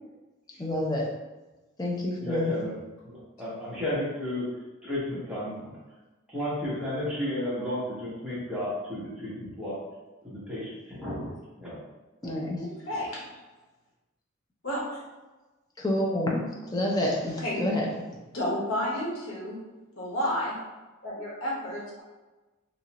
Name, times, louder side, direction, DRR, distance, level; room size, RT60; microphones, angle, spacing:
voice 1, 0.6-1.1 1.8-2.7 12.2-12.6 15.8-18.0, left 1 dB, 20° left, -2 dB, 0.4 m, -28 dB
voice 2, 2.2-2.7 3.0-4.5 4.8-5.7 6.3-9.8 10.2-11.3 11.6-11.8 12.2-12.3, left 1 dB, 5° right, -10 dB, 0.9 m, -33 dB
voice 3, 12.6-13.3 14.6-15.0 17.4-17.6 18.3-19.6 20.0-20.6 21.0-22.0, left 1 dB, 85° left, -4 dB, 1.0 m, -31 dB
3.0 x 2.4 x 2.8 m, 1.1 s
head